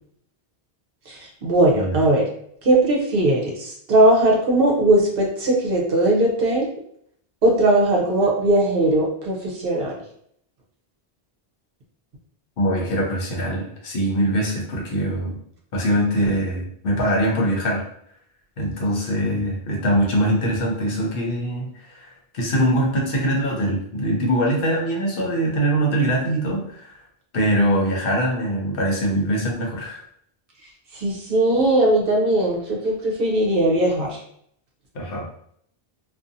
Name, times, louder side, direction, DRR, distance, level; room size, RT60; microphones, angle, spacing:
voice 1, 1.1-2.2 2.6-6.7 7.4-10.0 30.9-34.2, right 1 dB, 65° right, -1 dB, 0.9 m, -19 dB
voice 2, 1.7-2.0 12.6-15.4 15.7-17.8 18.6-22.1 22.3-27.0 27.3-30.0 34.9-35.3, equal, 65° left, -1 dB, 0.8 m, -22 dB
2.6 x 2.3 x 2.5 m, 0.67 s
omnidirectional pair, 1.0 m